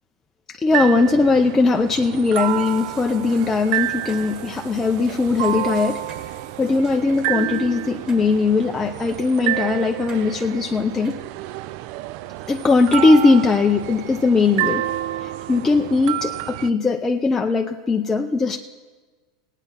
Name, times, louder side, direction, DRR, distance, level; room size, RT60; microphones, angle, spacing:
voice 1, 0.5-11.2 12.5-14.8 15.2-18.6, left 3 dB, 15° left, 3 dB, 0.5 m, -19 dB
sound 1, 0.7-16.7, right 15 dB, 55° right, 0.4 m, -29 dB
sound 2, 2.3-8.6 9.1-9.2 10.1-10.2 11.0-11.3, right 3 dB, 25° right, 1.9 m, -46 dB
17.0 x 9.0 x 5.8 m, 1.4 s
supercardioid pair, 130°, 3 cm